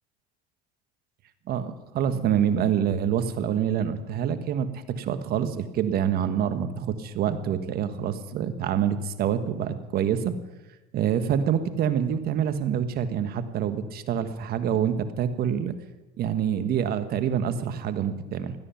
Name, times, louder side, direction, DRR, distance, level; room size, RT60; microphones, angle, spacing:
voice 1, 1.5-10.3 10.9-15.7 16.2-18.5, right 9 dB, 50° right, 10 dB, 1.4 m, -26 dB
16.5 x 12.5 x 5.8 m, 1.1 s
supercardioid pair, 100°, 21 cm